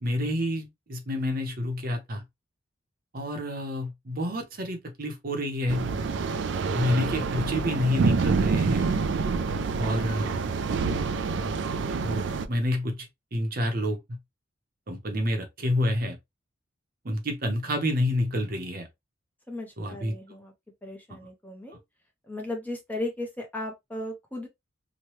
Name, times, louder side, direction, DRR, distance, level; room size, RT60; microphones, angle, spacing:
voice 1, 0.0-2.2 3.1-5.9 6.7-8.9 9.8-10.3 11.3-11.5 12.0-13.0 13.3-14.2 14.9-16.2 17.0-18.9 19.8-20.2 21.1-21.2, left 1 dB, 50° right, 0.7 m, -28 dB
sound 1, 5.7-12.5, right 4 dB, 65° right, 0.3 m, -27 dB
voice 2, 19.5-20.5 20.8-21.8 22.3-24.5, left 1 dB, 10° left, 0.6 m, -36 dB
3.0 x 2.2 x 3.0 m
head